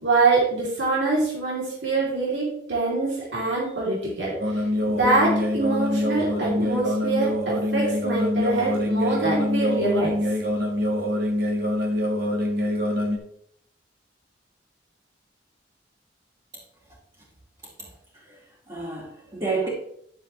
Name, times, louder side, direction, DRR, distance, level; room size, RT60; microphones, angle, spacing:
voice 1, 0.0-4.6 4.9-10.2, right 3 dB, 90° right, -5 dB, 3.0 m, -24 dB
Buddhist Chanting, 4.4-13.2, left 1 dB, 55° right, 1.5 m, -25 dB
voice 2, 18.7-19.7, right 3 dB, 25° right, -7 dB, 2.2 m, -30 dB
11.0 x 7.1 x 3.1 m, 0.68 s
head